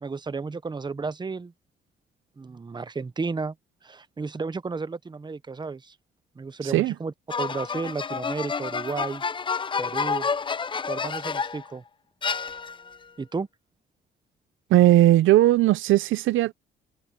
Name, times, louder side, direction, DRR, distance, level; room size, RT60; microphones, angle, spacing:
voice 1, 0.0-1.5 2.4-3.5 3.8-5.9 6.4-9.2 9.8-10.3 10.9-11.8 13.2-13.5, right 4 dB, 20° right, 0.9 m, -33 dB
voice 2, 6.6-6.9 14.7-16.5, right 15 dB, 80° right, 0.6 m, -18 dB
sound 1, 7.3-11.7 12.2-13.0, left 5 dB, 25° left, 0.5 m, -29 dB
cardioid pair, 90°, 20 cm